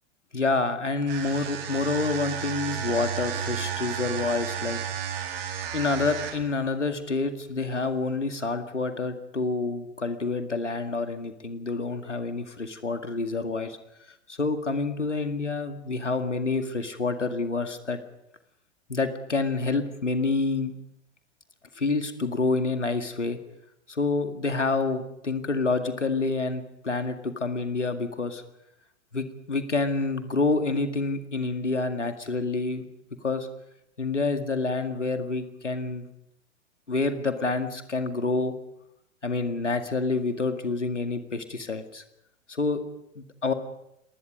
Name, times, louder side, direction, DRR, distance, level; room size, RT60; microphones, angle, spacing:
voice 1, 0.3-5.2 5.7-13.8 14.3-18.0 18.9-20.7 21.8-23.4 23.9-28.4 29.1-32.9 33.2-33.5 34.0-36.1 36.9-38.5 39.2-42.0 42.5-42.8 43.2-43.5, left 3 dB, 85° left, 7 dB, 2.1 m, -28 dB
sound 1, 1.0-6.6, right 8 dB, 55° right, 3.7 m, -32 dB
29.5 x 20.0 x 5.2 m, 0.82 s
figure-of-eight pair, 95°, 35 cm